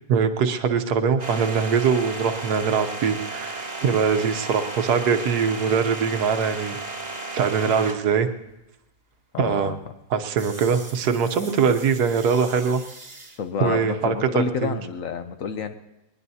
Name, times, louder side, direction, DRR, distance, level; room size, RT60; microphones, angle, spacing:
voice 1, 0.1-6.8 7.3-8.3 9.4-9.8 10.1-12.8 13.6-14.8, right 6 dB, 75° right, 7 dB, 1.4 m, -22 dB
sound 1, 1.2-8.2 10.4-13.4, right 2 dB, 30° right, 1.3 m, -35 dB
voice 2, 9.3-9.8 13.4-15.7, left 6 dB, 60° left, 9 dB, 1.0 m, -29 dB
22.0 x 20.0 x 2.8 m, 0.95 s
omnidirectional pair, 1.7 m